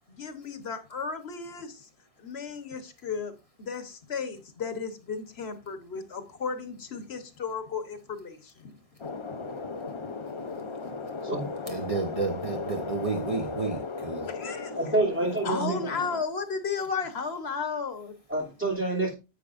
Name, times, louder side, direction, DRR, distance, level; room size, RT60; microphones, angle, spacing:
voice 1, 0.1-1.9 2.2-3.3 3.6-8.7 9.6-11.2 11.8-11.9 12.5-12.6 13.0-13.6 14.0-14.7 15.4-18.1, left 5 dB, 85° left, 1.4 m, -35 dB
sound 1, 9.0-16.2, left 4 dB, 35° left, 0.6 m, -36 dB
voice 2, 11.7-14.2, right 3 dB, 35° right, 1.0 m, -31 dB
voice 3, 14.8-15.8 18.3-19.1, right 2 dB, 10° right, 2.9 m, -27 dB
10.0 x 7.7 x 2.5 m
omnidirectional pair, 1.0 m